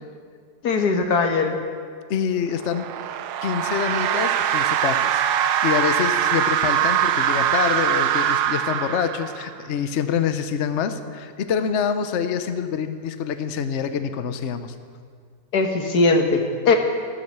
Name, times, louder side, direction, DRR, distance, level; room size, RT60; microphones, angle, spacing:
voice 1, 0.6-1.6 15.5-16.8, left 3 dB, 85° left, 4 dB, 1.9 m, -20 dB
voice 2, 2.1-2.9 3.4-5.2 5.6-14.7, left 7 dB, 55° left, 9 dB, 1.0 m, -26 dB
sound 1, 2.5-9.6, right 10 dB, 85° right, 1.3 m, -22 dB
14.0 x 12.5 x 6.7 m, 2.1 s
omnidirectional pair, 1.7 m